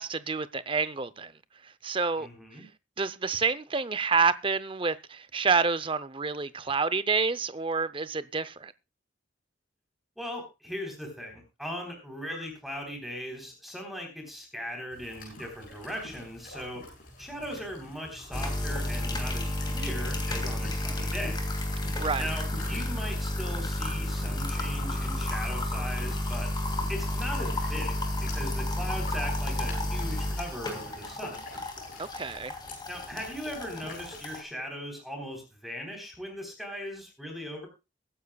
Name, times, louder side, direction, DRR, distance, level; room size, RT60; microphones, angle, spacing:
voice 1, 0.0-1.3 1.8-2.3 3.0-8.7 22.0-22.2 32.0-32.5, right 4 dB, 25° right, 0.6 m, -28 dB
voice 2, 2.2-2.7 10.2-16.8 17.2-21.4 22.2-26.5 26.9-28.0 28.2-31.4 32.9-37.7, equal, ahead, 3.7 m, -39 dB
sound 1, 14.9-34.2, left 2 dB, 45° left, 7.9 m, -47 dB
sound 2, 18.3-34.4, left 1 dB, 20° left, 2.7 m, -31 dB
22.5 x 10.0 x 2.3 m
head